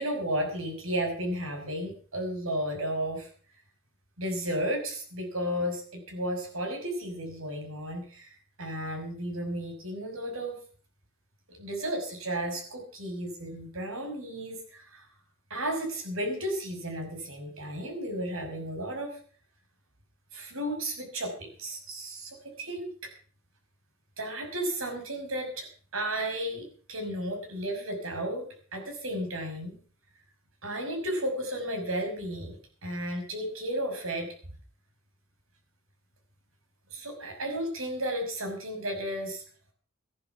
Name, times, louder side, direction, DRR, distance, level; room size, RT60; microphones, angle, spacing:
voice 1, 0.0-3.3 4.2-10.5 11.5-15.0 15.5-19.2 20.3-22.9 24.2-25.7 25.9-28.5 28.7-29.7 30.6-32.6 32.8-34.3 36.9-39.4, right 1 dB, 90° right, 3 dB, 5.9 m, -33 dB
15.0 x 11.0 x 6.9 m, 0.43 s
head